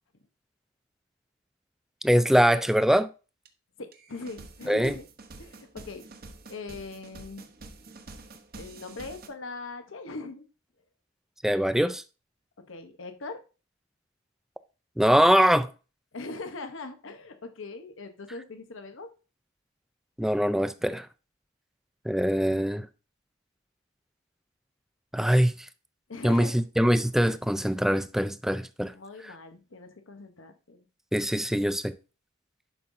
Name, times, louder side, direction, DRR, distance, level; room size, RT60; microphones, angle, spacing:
voice 1, 2.0-3.1 4.7-4.9 11.4-12.0 15.0-15.7 20.2-21.1 22.1-22.9 25.1-25.5 26.2-28.9 31.1-31.9, equal, ahead, 0.3 m, -23 dB
sound 1, 3.4-3.5 3.9-9.3, right 3 dB, 50° right, 1.0 m, -47 dB
voice 2, 3.8-5.1 5.4-6.0 6.5-7.5 8.5-10.5 12.7-13.4 16.1-19.1 26.1-26.5 28.9-30.9, left 3 dB, 75° left, 0.9 m, -41 dB
11.0 x 5.5 x 2.6 m
head